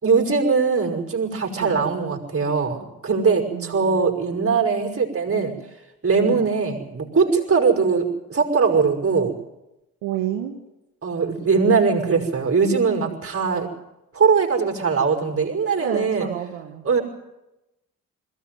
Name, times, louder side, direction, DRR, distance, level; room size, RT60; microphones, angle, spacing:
voice 1, 0.0-5.5 6.0-8.0 8.3-9.3 11.0-13.7 14.1-16.3 16.8-17.0, right 5 dB, 35° right, 2 dB, 5.9 m, -21 dB
voice 2, 3.5-4.0 6.2-6.4 10.0-10.6 15.8-16.9, right 12 dB, 80° right, 3 dB, 1.7 m, -31 dB
21.5 x 17.0 x 9.4 m, 0.95 s
hypercardioid pair, 45°, 39 cm